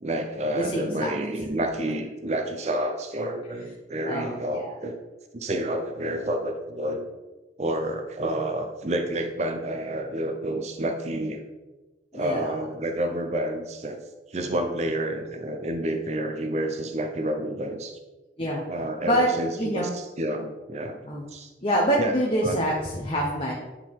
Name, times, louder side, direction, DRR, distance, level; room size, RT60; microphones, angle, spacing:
voice 1, 0.0-5.0 5.3-7.0 7.6-11.4 12.1-14.0 14.3-18.0 18.7-21.0 21.3-21.5 22.0-22.1 22.4-22.6, right 1 dB, 35° right, 5 dB, 0.6 m, -29 dB
voice 2, 0.5-1.1 4.1-4.7 12.1-12.5 14.4-14.5 18.4-18.6 19.0-19.3 19.6-19.9 21.1-21.3 21.6-23.5, equal, 30° left, -2 dB, 0.9 m, -26 dB
9.9 x 3.9 x 4.6 m, 1.1 s
head